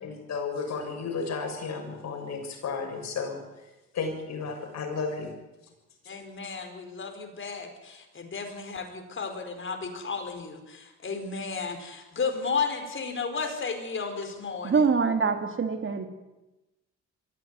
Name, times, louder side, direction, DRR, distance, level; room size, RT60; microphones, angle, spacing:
voice 1, 0.0-3.4 3.9-5.3, left 4 dB, 60° left, 2 dB, 6.9 m, -33 dB
voice 2, 6.1-14.8, left 5 dB, 40° left, 5 dB, 4.8 m, -33 dB
voice 3, 14.6-16.1, right 5 dB, 40° right, 6 dB, 2.9 m, -24 dB
22.5 x 15.0 x 9.7 m, 1.0 s
cardioid pair, 90°, 30 cm